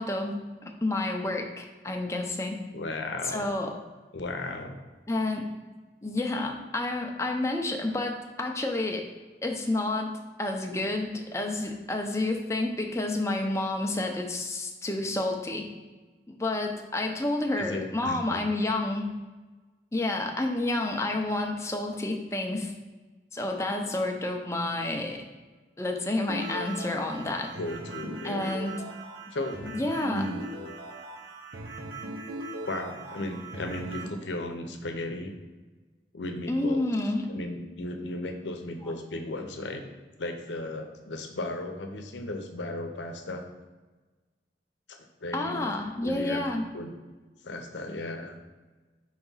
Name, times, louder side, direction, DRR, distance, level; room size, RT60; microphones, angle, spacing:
voice 1, 0.0-2.6 3.3-3.7 5.1-5.5 6.0-9.1 9.4-10.1 10.4-15.7 16.3-19.1 19.9-22.7 23.3-25.2 25.8-27.6 28.2-28.7 29.6-30.3 36.5-37.3 45.3-46.7, left 2 dB, 15° left, 2 dB, 0.6 m, -29 dB
voice 2, 2.7-3.5 4.1-4.8 17.6-18.4 27.6-28.5 29.3-29.7 30.1-30.4 32.7-35.3 36.1-36.8 37.3-39.8 40.2-43.4 44.9-45.7 46.0-46.4 46.7-46.9 47.4-48.4, left 2 dB, 85° left, 5 dB, 0.7 m, -35 dB
sound 1, 26.3-34.1, right 2 dB, 70° right, 0.9 m, -39 dB
4.9 x 3.5 x 5.5 m, 1.3 s
head